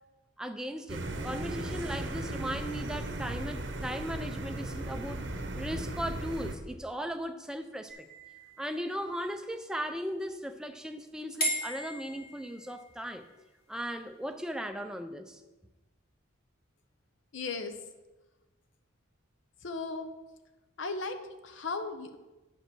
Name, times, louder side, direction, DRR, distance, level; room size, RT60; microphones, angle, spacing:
voice 1, 0.4-5.2 5.6-8.1 8.6-13.3 13.7-15.4, equal, 5° right, 7 dB, 0.4 m, -37 dB
sound 1, 0.9-6.6, right 2 dB, 60° right, 0.8 m, -36 dB
sound 2, 7.9-9.5 11.4-13.0, equal, 45° left, 2.3 m, -37 dB
voice 2, 17.3-17.8 19.6-20.1 20.8-22.2, left 3 dB, 65° left, 8 dB, 0.7 m, -36 dB
8.8 x 5.1 x 6.1 m, 1.1 s
head